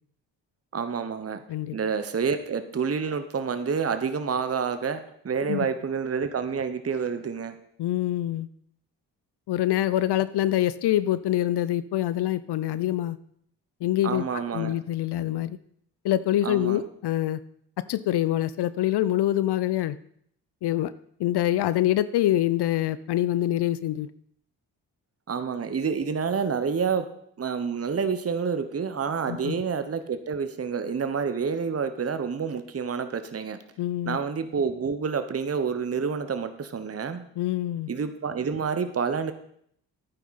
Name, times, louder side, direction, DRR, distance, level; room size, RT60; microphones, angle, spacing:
voice 1, 0.7-1.4 1.7-7.6 14.0-14.8 16.4-16.8 25.3-27.1 27.4-33.6 34.1-37.2 37.9-39.3, right 6 dB, 30° right, 10 dB, 1.0 m, -28 dB
voice 2, 7.8-8.5 9.5-13.2 13.8-15.6 16.0-17.4 17.9-20.0 20.6-20.9 21.2-24.1 29.3-29.5 33.8-34.2 37.4-37.9, left 13 dB, 60° left, 16 dB, 0.6 m, -25 dB
11.0 x 9.2 x 4.2 m, 0.67 s
hypercardioid pair, 45°, 45 cm